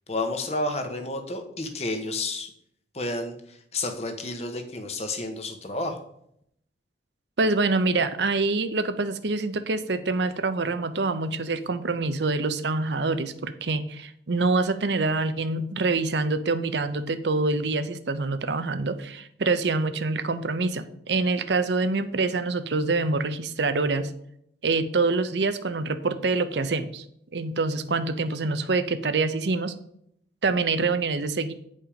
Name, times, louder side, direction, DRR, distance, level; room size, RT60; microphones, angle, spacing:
voice 1, 0.1-2.5 2.9-6.0, left 2 dB, 35° left, 5 dB, 1.1 m, -31 dB
voice 2, 7.4-24.1 24.6-27.0 27.3-29.7 30.4-31.5, right 3 dB, 80° right, 10 dB, 0.7 m, -26 dB
8.8 x 5.3 x 5.1 m, 0.72 s
head